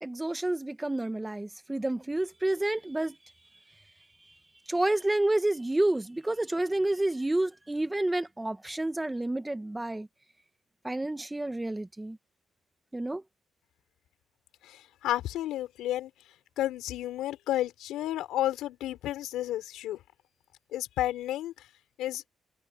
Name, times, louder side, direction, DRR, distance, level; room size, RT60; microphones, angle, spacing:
voice 1, 0.0-3.2 4.7-10.1 10.8-12.2 12.9-13.2, right 1 dB, 10° right, 1.5 m, -29 dB
voice 2, 14.6-16.1 16.6-20.0 20.7-21.5 22.0-22.2, left 13 dB, 90° left, 4.8 m, -31 dB
cardioid pair, 90°, 0 cm